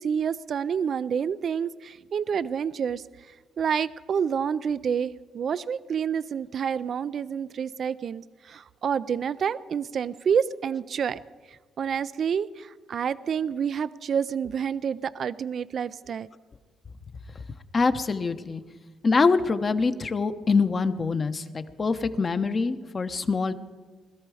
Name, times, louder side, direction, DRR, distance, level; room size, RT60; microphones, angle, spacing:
voice 1, 0.0-3.0 3.6-11.2 11.5-16.3, right 7 dB, 55° right, 16 dB, 0.4 m, -28 dB
voice 2, 17.7-18.6 19.0-23.5, left 4 dB, 35° left, 10 dB, 0.9 m, -24 dB
20.5 x 13.5 x 4.9 m, 1.4 s
cardioid pair, 90°, 0 cm